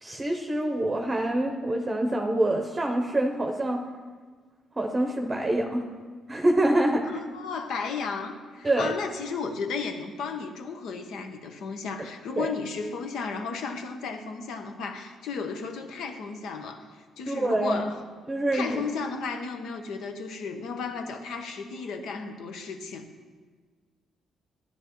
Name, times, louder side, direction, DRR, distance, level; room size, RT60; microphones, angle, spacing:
voice 1, 0.0-3.8 4.8-5.9 6.3-7.1 8.6-8.9 12.4-12.5 17.3-17.8 18.3-18.8, right 1 dB, 25° right, 2 dB, 0.7 m, -25 dB
voice 2, 7.1-18.0 18.5-23.1, left 5 dB, 80° left, 6 dB, 0.9 m, -34 dB
12.5 x 9.7 x 3.0 m, 1.5 s
cardioid pair, 90°, 0 cm